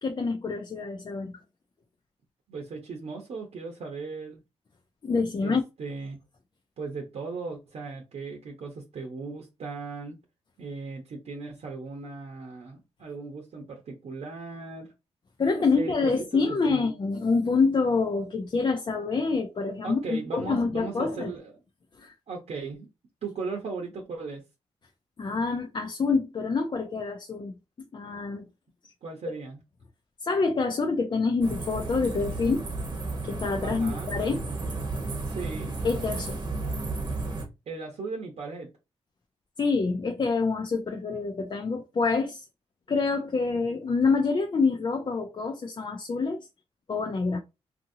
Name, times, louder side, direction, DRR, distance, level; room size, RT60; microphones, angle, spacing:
voice 1, 0.0-1.4 5.0-5.6 15.4-21.3 22.0-22.1 25.2-27.6 27.9-28.5 28.8-28.9 30.2-32.6 33.2-34.4 35.8-36.4 39.6-42.5 42.9-46.5 46.9-47.4, left 4 dB, 40° left, 0.5 m, -26 dB
voice 2, 2.5-4.4 5.4-6.2 6.8-10.2 10.6-14.9 15.5-16.1 16.7-16.9 19.8-21.5 22.3-22.9 23.2-24.4 29.0-29.6 33.6-34.1 35.2-35.8 37.7-38.7, right 4 dB, 65° right, 0.8 m, -37 dB
sound 1, 31.4-37.5, right 3 dB, 35° right, 1.0 m, -33 dB
2.7 x 2.6 x 2.7 m
cardioid pair, 70°, 12 cm